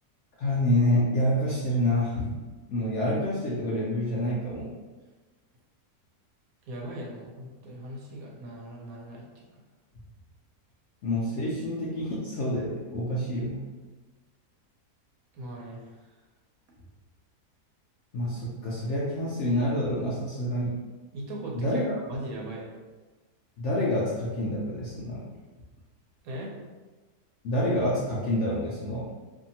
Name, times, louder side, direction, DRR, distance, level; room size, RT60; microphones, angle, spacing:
voice 1, 0.4-2.4 2.7-4.7 11.0-13.6 18.1-20.7 21.5-21.9 23.6-25.2 27.4-29.0, left 1 dB, 65° left, -6 dB, 0.7 m, -27 dB
voice 2, 6.7-9.2 15.3-16.1 21.1-21.8 22.1-22.8 26.2-26.5, right 1 dB, 70° right, -2 dB, 1.0 m, -39 dB
2.7 x 2.6 x 2.7 m, 1.3 s
omnidirectional pair, 1.7 m